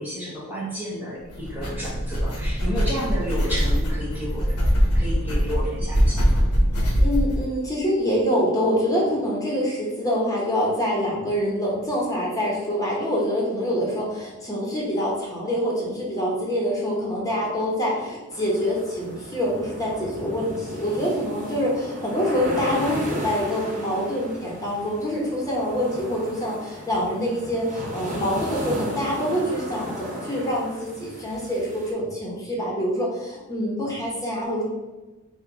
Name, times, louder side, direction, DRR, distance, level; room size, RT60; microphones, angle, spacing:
voice 1, 0.0-4.6 4.9-6.4, equal, 10° right, -7 dB, 1.0 m, -31 dB
sound 1, 1.3-7.4, equal, 90° left, 1.2 m, -22 dB
voice 2, 7.0-34.6, equal, 15° left, -4 dB, 1.1 m, -25 dB
sound 2, 18.3-31.9, left 1 dB, 35° right, 1.2 m, -35 dB
4.4 x 2.5 x 4.6 m, 1.1 s
head